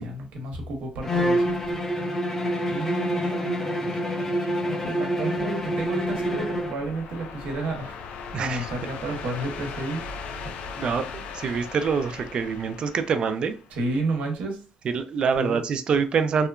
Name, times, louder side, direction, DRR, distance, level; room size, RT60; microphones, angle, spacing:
voice 1, 0.0-1.4 2.7-3.6 4.8-8.0 8.4-10.0 13.8-14.6 15.4-15.6, right 2 dB, 75° right, 2 dB, 0.9 m, -31 dB
Bowed string instrument, 1.0-6.8, equal, 20° left, 0.5 m, -26 dB
sound 1, 5.6-13.9, left 5 dB, 75° left, 0.4 m, -39 dB
voice 2, 8.3-8.7 10.8-13.6 14.8-16.5, right 6 dB, 45° right, 9 dB, 0.3 m, -25 dB
2.8 x 2.1 x 2.3 m, 0.37 s
cardioid pair, 130°, 2 cm